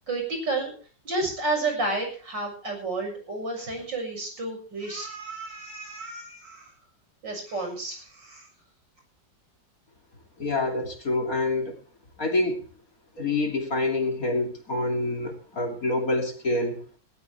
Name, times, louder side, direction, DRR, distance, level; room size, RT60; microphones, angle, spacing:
voice 1, 0.1-0.7 1.0-6.7 7.2-8.5, right 2 dB, 70° right, 2 dB, 7.6 m, -31 dB
voice 2, 10.4-11.8 12.2-12.7 13.2-16.8, left 2 dB, 45° left, 2 dB, 3.3 m, -27 dB
18.5 x 17.5 x 3.5 m, 0.40 s
omnidirectional pair, 2.0 m